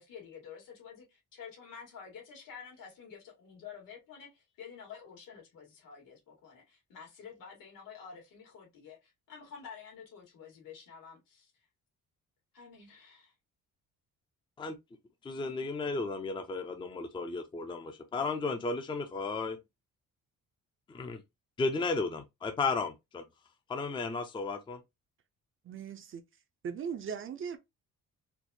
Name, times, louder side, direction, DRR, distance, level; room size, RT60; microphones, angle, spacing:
voice 1, 0.0-11.5 12.5-13.3, left 6 dB, 80° left, 2.2 m, -50 dB
voice 2, 15.2-19.6 20.9-21.2 21.6-23.2 23.7-24.8, left 3 dB, 15° left, 0.5 m, -34 dB
voice 3, 25.6-26.2 26.6-27.6, right 7 dB, 40° right, 0.5 m, -38 dB
4.4 x 2.4 x 2.7 m
cardioid pair, 145°, 33 cm